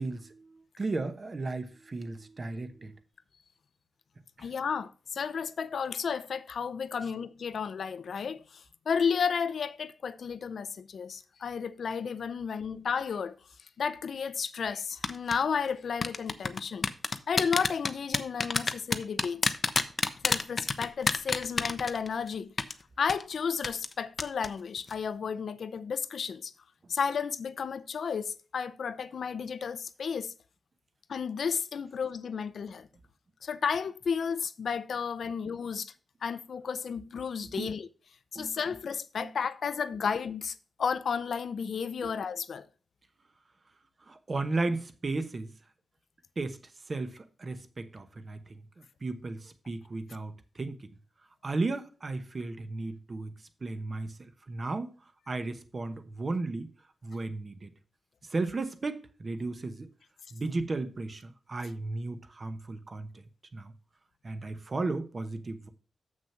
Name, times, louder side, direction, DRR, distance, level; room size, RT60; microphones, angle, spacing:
voice 1, 0.0-3.0 4.4-4.5 37.4-37.7 38.3-38.5 39.2-39.3 42.0-42.1 44.1-45.5 46.4-46.6 46.9-50.9 51.4-53.3 53.6-55.0 55.3-56.7 57.0-57.7 58.2-59.9 60.3-63.1 63.5-63.7 64.2-65.7, right 3 dB, 35° right, 0.9 m, -35 dB
voice 2, 4.4-13.4 13.8-16.9 17.3-19.5 20.2-22.5 23.0-26.5 26.9-30.3 31.1-32.9 33.4-35.9 36.2-37.9 38.3-42.7, left 6 dB, 75° left, 0.5 m, -32 dB
sound 1, 15.0-15.3 16.0-22.3 22.6-22.7 23.1-23.2 23.6-23.9 24.2-24.5 24.8-24.9, left 4 dB, 35° left, 0.7 m, -27 dB
7.3 x 6.3 x 5.5 m
wide cardioid pair, 140°, 0 cm